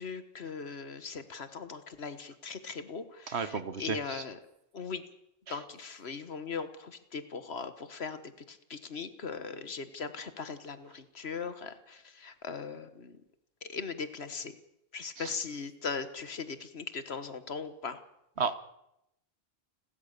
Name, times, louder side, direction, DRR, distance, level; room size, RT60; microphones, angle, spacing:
voice 1, 0.0-4.4 4.7-5.0 5.5-8.2 8.5-13.2 13.6-14.5 14.9-18.0, left 5 dB, 75° left, 11 dB, 1.7 m, -39 dB
voice 2, 3.3-4.2 5.5-5.6 15.2-15.3 18.4-18.5, right 5 dB, 80° right, 12 dB, 1.5 m, -33 dB
29.5 x 13.0 x 6.7 m, 0.82 s
omnidirectional pair, 1.1 m